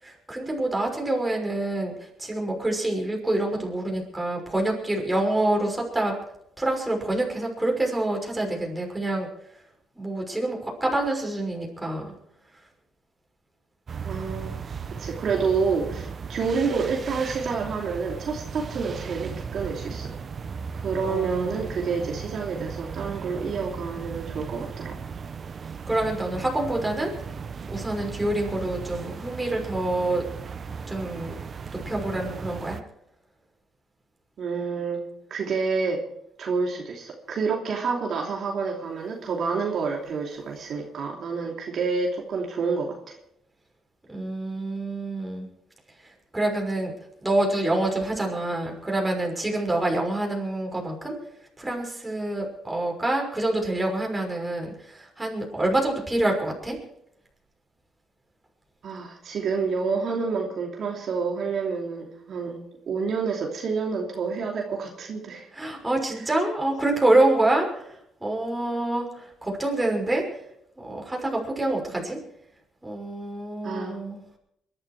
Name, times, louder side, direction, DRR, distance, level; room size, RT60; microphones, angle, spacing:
voice 1, 0.0-6.2 6.6-9.3 9.9-12.1 21.0-21.6 25.9-27.1 27.7-30.3 30.9-31.3 31.7-32.8 44.1-45.5 46.0-46.9 47.2-51.2 51.6-56.8 65.5-70.4 70.8-72.2 72.8-74.2, right 1 dB, 10° right, 0 dB, 6.1 m, -26 dB
sound 1, 13.9-32.8, right 6 dB, 45° right, 1.0 m, -36 dB
voice 2, 14.0-14.5 15.0-20.1 20.7-25.0 34.4-35.0 35.3-36.0 36.4-43.2 58.8-65.5 72.0-72.1 73.6-74.0, right 5 dB, 60° right, 0 dB, 2.9 m, -28 dB
23.0 x 12.0 x 4.8 m, 0.75 s
cardioid pair, 90°, 0 cm